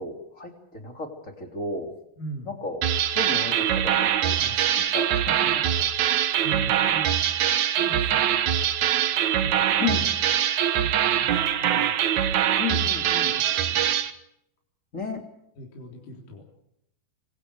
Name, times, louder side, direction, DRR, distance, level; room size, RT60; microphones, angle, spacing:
voice 1, 0.0-1.9 2.4-2.8 3.1-5.9 9.8-10.1 12.6-13.4 14.9-15.2, left 4 dB, 20° left, 4 dB, 2.9 m, -33 dB
voice 2, 2.2-2.6 5.7-5.9 6.4-7.3 7.8-8.4 9.4-10.1 10.8-11.3 11.6-12.0 13.3-13.9 15.6-16.4, right 2 dB, 50° left, 0 dB, 5.1 m, -40 dB
sound 1, 2.8-14.1, right 10 dB, 70° right, 1.7 m, -23 dB
26.0 x 25.5 x 4.9 m, 0.76 s
omnidirectional pair, 5.3 m